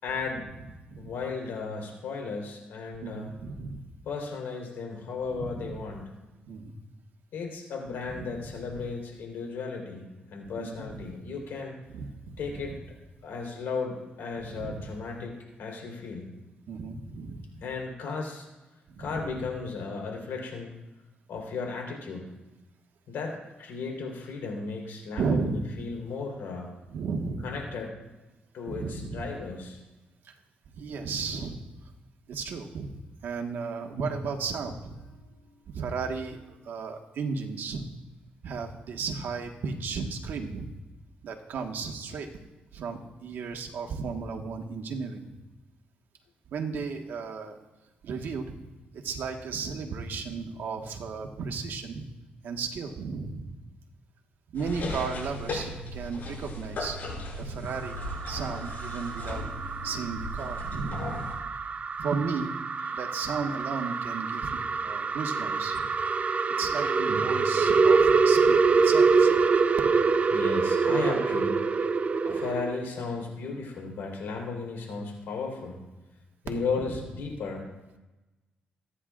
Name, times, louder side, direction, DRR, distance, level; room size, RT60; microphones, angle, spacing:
voice 1, 0.0-0.5 1.0-3.3 4.1-6.0 7.3-11.8 12.4-12.8 13.2-16.3 17.6-18.5 19.0-20.7 21.3-22.3 23.1-26.7 27.4-27.9 28.5-29.8 35.1-35.8 70.3-71.6 72.2-75.8 76.4-77.7, left 4 dB, 85° left, 0 dB, 4.0 m, -35 dB
voice 2, 3.0-3.9 5.3-5.8 6.5-6.7 8.1-8.3 10.6-11.0 11.9-12.6 14.4-15.0 16.7-17.5 18.9-19.2 25.2-25.7 26.9-27.5 28.6-29.3 30.2-30.3 30.7-31.6 32.3-33.0 33.2-35.0 35.7-37.9 38.4-40.7 41.2-42.3 42.7-45.3 46.5-47.6 48.0-48.6 48.9-52.0 52.4-53.5 54.5-57.0 57.4-58.0 58.3-59.4 59.8-61.3 62.0-62.5 62.9-65.9 66.6-69.4 76.5-77.1, right 5 dB, 75° right, 3 dB, 1.6 m, -34 dB
sound 1, 54.5-61.3, left 1 dB, 60° left, 5.5 m, -37 dB
sound 2, 57.7-72.8, right 4 dB, 40° right, 0.7 m, -25 dB
26.0 x 10.0 x 2.5 m, 1.1 s
cardioid pair, 90°, 4 cm